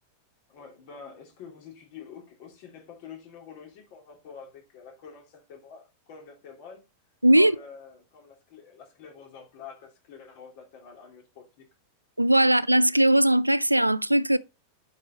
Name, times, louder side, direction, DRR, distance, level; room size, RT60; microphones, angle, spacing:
voice 1, 0.5-6.8 7.3-11.6, left 6 dB, 50° left, 3.3 m, -47 dB
voice 2, 7.2-7.6 12.2-14.4, right 1 dB, 85° right, 0.3 m, -19 dB
8.1 x 5.4 x 4.3 m
figure-of-eight pair, 90°, 0 cm